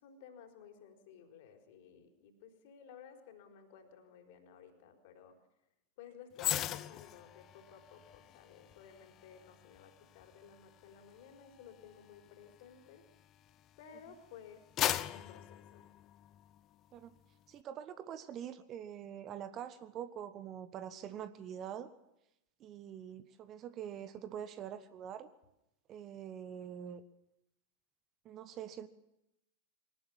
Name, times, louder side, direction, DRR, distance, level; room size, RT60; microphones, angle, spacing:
voice 1, 0.0-5.3 6.0-13.0 13.8-14.6 14.9-15.9, left 7 dB, 50° left, 5 dB, 4.5 m, -55 dB
sound 1, 6.4-13.8 14.2-16.6 17.0-17.2, left 12 dB, 35° left, 0.9 m, -40 dB
voice 2, 17.5-21.9 22.6-25.3 25.9-27.0 28.2-28.9, right 9 dB, 35° right, 12 dB, 1.4 m, -45 dB
23.5 x 18.5 x 7.3 m, 0.86 s
figure-of-eight pair, 90°, 0 cm